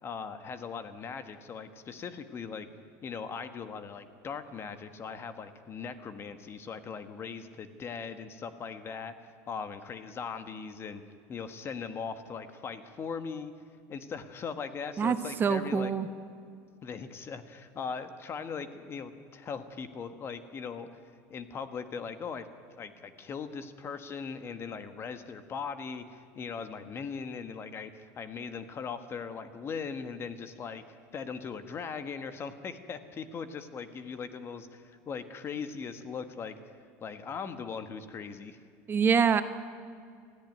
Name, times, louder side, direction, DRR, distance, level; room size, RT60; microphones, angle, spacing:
voice 1, 0.0-2.7 3.0-9.1 9.5-11.0 11.3-13.5 13.9-15.9 16.8-20.9 21.3-30.8 31.1-36.5 37.0-38.6, left 6 dB, 35° left, 10 dB, 1.4 m, -39 dB
voice 2, 15.0-16.1 38.9-39.4, right 6 dB, 30° right, 10 dB, 1.0 m, -25 dB
20.0 x 14.5 x 9.2 m, 2.2 s
supercardioid pair, 120°, 7 cm